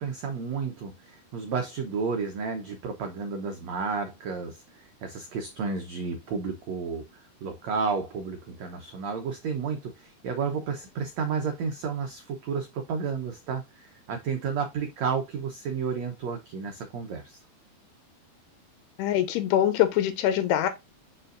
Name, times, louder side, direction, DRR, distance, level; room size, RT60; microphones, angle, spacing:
voice 1, 0.0-17.4, right 5 dB, 80° right, 1.5 m, -32 dB
voice 2, 19.0-20.7, left 11 dB, 90° left, 3.0 m, -23 dB
6.9 x 6.2 x 2.5 m
omnidirectional pair, 4.6 m